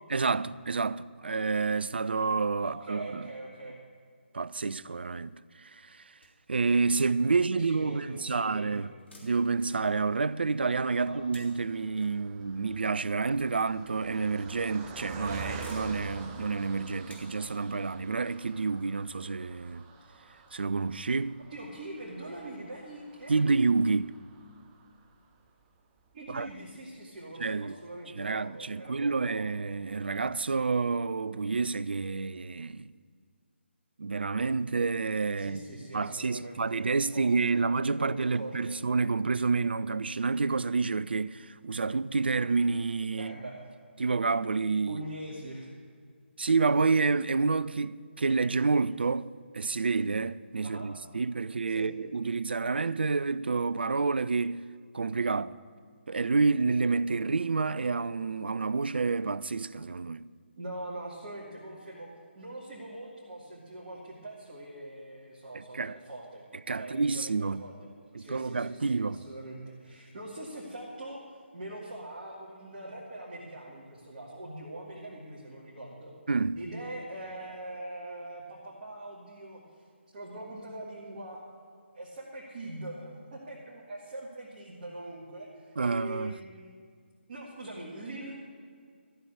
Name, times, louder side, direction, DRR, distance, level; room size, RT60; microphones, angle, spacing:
voice 1, 0.1-3.3 4.3-6.0 6.5-8.9 9.2-19.8 20.5-21.4 23.3-24.1 26.3-26.5 27.4-27.7 28.1-32.9 34.0-35.6 35.9-43.4 44.0-45.0 46.4-49.3 49.5-54.6 54.9-55.6 56.1-60.3 65.5-65.9 66.7-67.6 68.1-69.2 76.3-76.6 85.8-86.4, right 4 dB, 55° right, 0.4 m, -29 dB
voice 2, 2.6-3.8 7.6-8.9 11.0-11.2 21.5-23.6 26.1-29.4 35.4-37.6 38.0-38.8 43.2-43.7 44.9-45.7 50.6-50.9 51.8-51.9 60.6-62.1 62.3-66.4 66.7-67.7 68.2-76.1 76.6-79.6 80.1-81.4 81.9-86.8 87.3-88.4, right 1 dB, 35° right, 2.2 m, -42 dB
sound 1, 6.2-7.5 9.0-10.4 11.0-12.6 13.5-13.6 14.7-15.1 15.4-18.0 18.7-18.8 19.2-19.3, left 1 dB, 65° left, 3.2 m, -57 dB
Car passing by, 10.0-25.5 26.0-26.1 26.3-26.5, right 4 dB, 15° right, 0.7 m, -47 dB
13.5 x 6.8 x 8.5 m
figure-of-eight pair, 150°, 7 cm